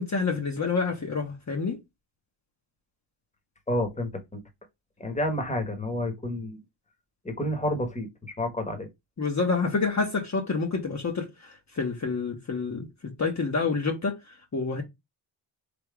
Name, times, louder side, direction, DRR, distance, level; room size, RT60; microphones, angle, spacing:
voice 1, 0.0-1.8 9.2-14.2 14.5-14.8, left 4 dB, 35° left, 1.0 m, -28 dB
voice 2, 3.7-4.4 5.0-6.6 7.2-8.9, left 1 dB, 15° left, 1.2 m, -30 dB
3.5 x 2.9 x 4.6 m
wide cardioid pair, 110°, 49 cm